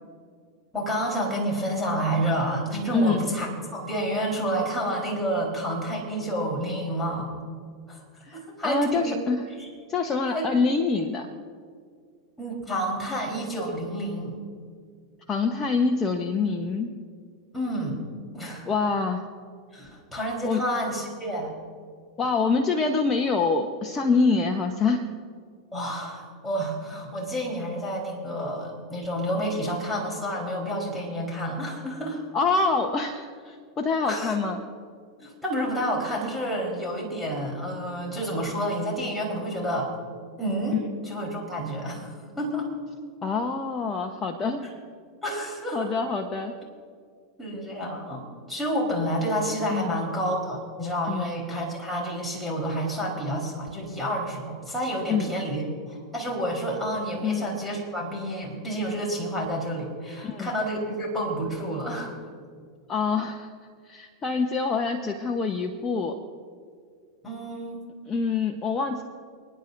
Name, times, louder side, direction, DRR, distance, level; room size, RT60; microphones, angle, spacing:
voice 1, 0.7-7.3 7.9-8.0 8.3-9.2 9.6-9.7 10.3-10.5 12.4-14.4 17.5-18.0 18.3-18.7 19.7-21.6 25.7-32.2 34.0-34.4 35.2-39.9 40.4-42.7 44.6-44.7 45.2-45.9 47.4-62.1 67.2-67.8, equal, 5° left, -3 dB, 4.1 m, -29 dB
voice 2, 8.6-9.4 9.9-11.3 15.3-16.9 18.7-19.3 20.4-20.6 22.2-25.0 32.3-34.6 43.2-44.7 45.7-46.5 49.7-49.9 51.1-51.3 55.1-55.3 57.2-57.5 60.2-60.5 62.9-63.5 63.8-66.2 68.1-69.0, left 4 dB, 25° left, 4 dB, 1.0 m, -25 dB
29.5 x 10.0 x 2.7 m, 2.1 s
hypercardioid pair, 95°, 2 cm